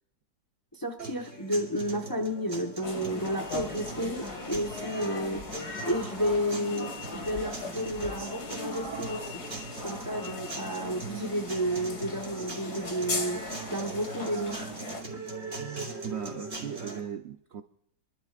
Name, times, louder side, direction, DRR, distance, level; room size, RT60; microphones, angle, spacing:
voice 1, 0.7-5.5 5.8-9.5 9.8-14.7 15.1-15.2, equal, 20° left, 3 dB, 0.6 m, -32 dB
sound 1, 1.0-17.0, right 3 dB, 35° right, 3.3 m, -41 dB
sound 2, 2.8-15.0, left 3 dB, 60° left, 2.6 m, -38 dB
voice 2, 15.6-17.6, right 9 dB, 60° right, 8 dB, 0.7 m, -39 dB
27.5 x 12.5 x 2.5 m, 0.72 s
omnidirectional pair, 1.9 m